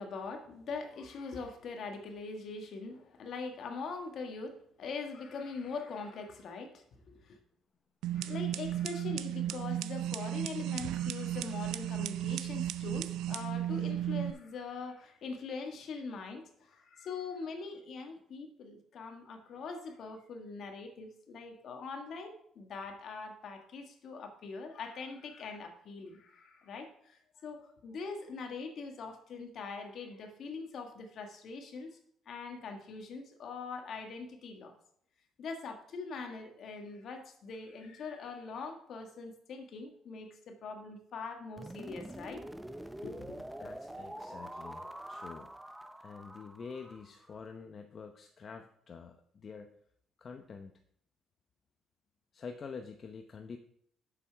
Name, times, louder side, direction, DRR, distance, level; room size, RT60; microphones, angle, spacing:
voice 1, 0.0-7.4 8.1-31.9 32.3-34.7 35.4-42.4 43.0-43.4, left 4 dB, 60° left, 4 dB, 1.6 m, -42 dB
sound 1, 8.0-14.3, right 12 dB, 85° right, 0.3 m, -35 dB
sound 2, 41.6-47.5, right 1 dB, 5° right, 0.6 m, -45 dB
voice 2, 43.6-45.5 46.0-49.2 49.4-49.7 50.2-50.7 52.3-53.6, left 5 dB, 45° left, 5 dB, 0.7 m, -47 dB
7.1 x 6.9 x 4.6 m, 0.66 s
cardioid pair, 85°, 0 cm